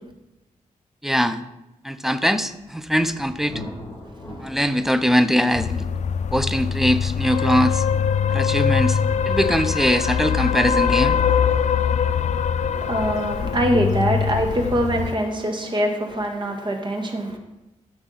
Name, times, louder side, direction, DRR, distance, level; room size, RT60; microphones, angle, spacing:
voice 1, 1.0-1.4 1.8-3.6 4.4-5.8 6.3-7.8 8.3-9.0 9.3-11.2, equal, ahead, 0.6 m, -21 dB
Thunder, 2.4-13.7, left 1 dB, 20° left, 1.8 m, -44 dB
sound 1, 5.5-15.1, left 7 dB, 60° left, 0.4 m, -22 dB
voice 2, 12.7-17.4, equal, 35° right, 1.7 m, -23 dB
13.5 x 6.0 x 4.0 m
cardioid pair, 90°, 13 cm